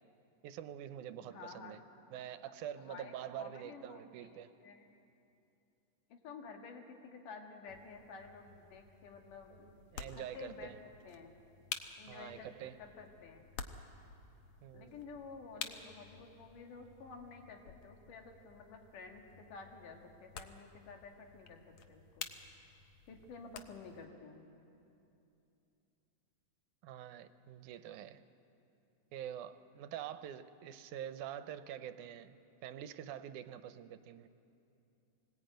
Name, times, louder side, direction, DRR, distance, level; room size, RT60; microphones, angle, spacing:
voice 1, 0.4-1.8 2.1-4.5 9.5-10.8 12.1-12.8 14.6-15.0 26.8-28.2 29.1-34.3, right 10 dB, 80° right, 12 dB, 2.1 m, -46 dB
voice 2, 1.2-1.8 2.8-4.9 6.1-9.7 10.1-10.7 11.0-11.3 12.0-12.5 12.8-13.4 14.7-22.3 23.1-24.4, left 4 dB, 85° left, 3 dB, 3.4 m, -51 dB
sound 1, 7.7-24.1, left 6 dB, 65° left, 1.6 m, -51 dB
23.5 x 19.5 x 9.0 m, 2.8 s
omnidirectional pair, 3.6 m